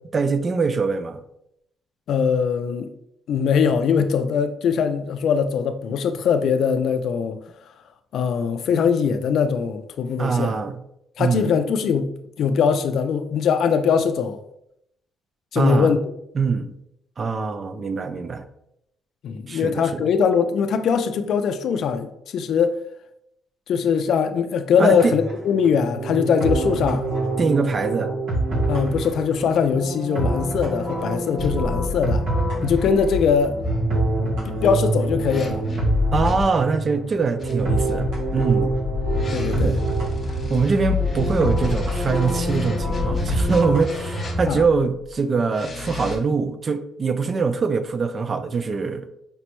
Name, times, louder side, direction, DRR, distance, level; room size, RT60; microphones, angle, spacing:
voice 1, 0.1-1.2 10.2-10.8 11.2-11.6 15.6-16.0 16.4-16.7 17.2-18.4 19.5-20.0 24.8-25.1 27.4-28.1 36.1-38.7 39.6-39.7 40.5-49.1, right 4 dB, 40° right, 0.4 m, -23 dB
voice 2, 2.1-2.9 3.3-7.4 8.1-10.6 11.2-12.1 12.4-14.4 15.5-16.0 19.2-22.8 23.7-27.1 28.7-32.2 32.6-33.6 34.2-35.6 39.3-39.8 44.5-44.6, left 6 dB, 70° left, 0.3 m, -21 dB
sound 1, 24.9-44.5, right 2 dB, 85° right, 0.9 m, -27 dB
sound 2, 31.4-36.4 37.4-44.8 45.5-46.1, left 3 dB, 45° left, 0.8 m, -28 dB
5.2 x 2.0 x 2.9 m
cardioid pair, 90°, 0 cm